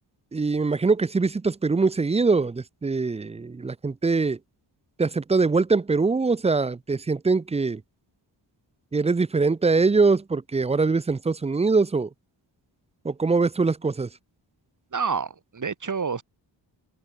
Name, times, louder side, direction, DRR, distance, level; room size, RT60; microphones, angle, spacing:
voice 1, 0.3-4.4 5.0-7.8 8.9-12.1 13.0-14.1, right 4 dB, 15° right, 0.4 m, -23 dB
voice 2, 14.9-16.2, right 5 dB, 45° right, 2.5 m, -28 dB
open air
cardioid pair, 85°, 44 cm